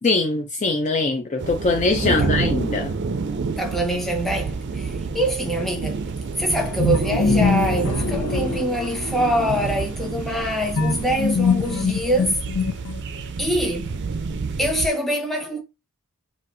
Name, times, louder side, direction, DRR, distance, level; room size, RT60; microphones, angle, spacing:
voice 1, 0.0-2.9, left 3 dB, 35° left, 0.4 m, -22 dB
sound 1, 1.4-14.9, right 4 dB, 55° right, 0.5 m, -28 dB
voice 2, 2.0-2.3 3.6-6.0 6.4-12.4 13.4-13.9 14.6-15.6, right 1 dB, ahead, 1.0 m, -24 dB
sound 2, 6.8-9.3 10.8-13.2, left 5 dB, 90° left, 0.5 m, -23 dB
4.2 x 2.6 x 2.6 m
head